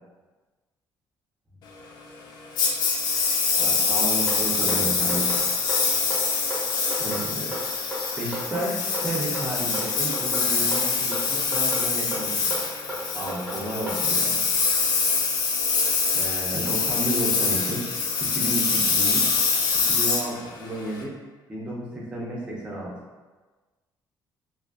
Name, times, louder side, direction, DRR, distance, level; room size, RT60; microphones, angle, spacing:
Engine, 2.6-21.0, left 4 dB, 65° left, 0.4 m, -24 dB
voice 1, 3.6-5.4 5.9-6.3 7.0-7.6 8.2-12.6 13.1-14.4 16.1-17.9 18.2-19.4 19.8-21.1 21.5-23.0, right 1 dB, 15° right, -5 dB, 0.5 m, -32 dB
sound 1, 4.3-14.0, equal, 5° left, 0.8 m, -34 dB
2.6 x 2.4 x 2.3 m, 1.3 s
cardioid pair, 175°, 8 cm